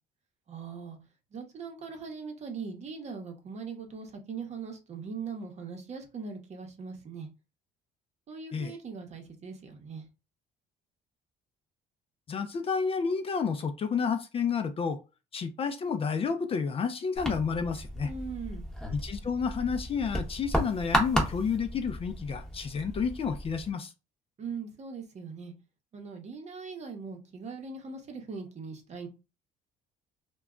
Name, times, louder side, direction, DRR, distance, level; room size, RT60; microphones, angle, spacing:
voice 1, 0.5-1.0 1.3-7.3 8.3-10.0 18.0-18.6 24.4-25.5 25.9-29.1, right 5 dB, 40° right, 0.8 m, -40 dB
voice 2, 12.3-15.0 15.3-18.1 18.9-23.9, left 6 dB, 35° left, 0.4 m, -30 dB
sound 1, 17.2-23.7, equal, 5° left, 0.8 m, -34 dB
2.2 x 2.0 x 3.6 m
cardioid pair, 110°, 17 cm